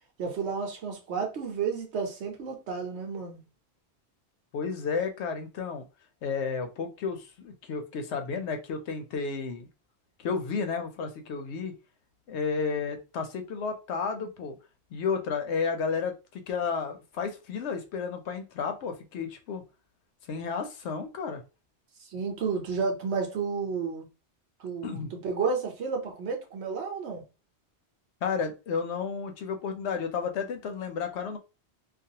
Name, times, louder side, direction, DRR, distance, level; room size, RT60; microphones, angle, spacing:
voice 1, 0.2-3.4 22.1-24.1 24.6-27.2, right 5 dB, 80° right, 1.1 m, -31 dB
voice 2, 4.5-5.8 6.2-9.7 10.2-11.7 12.3-14.6 14.9-19.6 20.3-21.4 24.8-25.1 28.2-31.4, left 5 dB, 85° left, 0.9 m, -32 dB
2.4 x 2.4 x 2.7 m
omnidirectional pair, 1.1 m